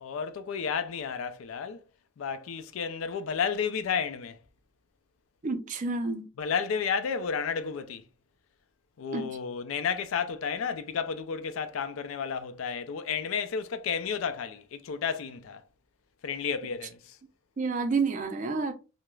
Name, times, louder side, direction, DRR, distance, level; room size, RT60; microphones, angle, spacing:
voice 1, 0.0-1.8 2.2-4.4 6.4-8.0 9.0-15.6 16.2-17.2, left 6 dB, 80° left, 0.4 m, -32 dB
voice 2, 5.4-6.3 9.1-9.3 17.6-18.7, right 4 dB, 40° right, 0.4 m, -29 dB
2.3 x 2.0 x 3.0 m
head